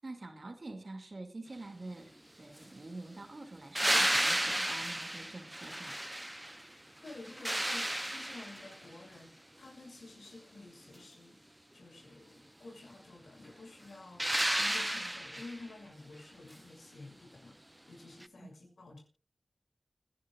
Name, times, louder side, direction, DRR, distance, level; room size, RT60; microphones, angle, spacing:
voice 1, 0.0-6.0 18.4-18.5, right 2 dB, 55° right, 2.3 m, -46 dB
sound 1, 3.8-6.7 7.1-8.8 14.2-15.6 18.2-18.3, right 1 dB, 15° right, 0.6 m, -32 dB
voice 2, 7.0-17.6 17.9-19.0, left 2 dB, 85° left, 6.6 m, -51 dB
29.5 x 11.0 x 2.4 m
cardioid pair, 50°, 0 cm